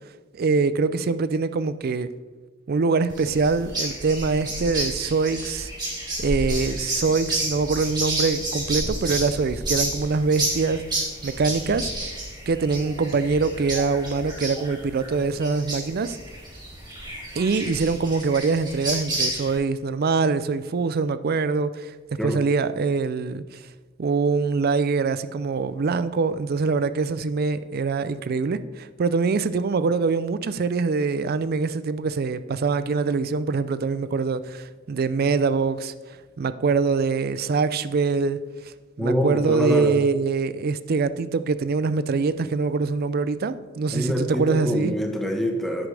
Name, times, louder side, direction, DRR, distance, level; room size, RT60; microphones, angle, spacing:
voice 1, 0.3-2.1 2.7-5.7 6.2-10.8 11.2-11.9 12.5-16.2 17.4-21.9 22.2-23.6 24.0-35.9 36.4-44.9, right 4 dB, 50° right, 14 dB, 0.4 m, -24 dB
sound 1, 3.1-19.6, right 1 dB, 20° right, 3.2 m, -30 dB
voice 2, 39.0-40.0 43.9-45.9, equal, ahead, 2 dB, 1.1 m, -25 dB
10.0 x 9.8 x 3.3 m, 1.3 s
head